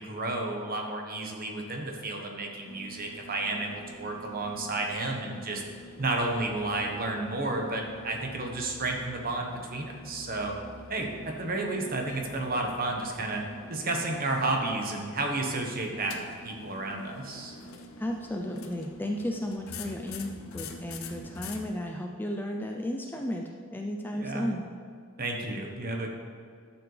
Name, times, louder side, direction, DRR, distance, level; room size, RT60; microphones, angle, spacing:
voice 1, 0.0-5.6 6.0-10.6 10.9-13.4 13.7-17.5 24.1-24.5 25.2-26.1, right 2 dB, 40° right, 2 dB, 1.1 m, -32 dB
sound 1, 2.7-21.7, left 2 dB, 70° left, 0.7 m, -46 dB
voice 2, 18.0-24.6, left 1 dB, 10° left, 2 dB, 0.4 m, -34 dB
11.5 x 7.1 x 3.3 m, 2.1 s
head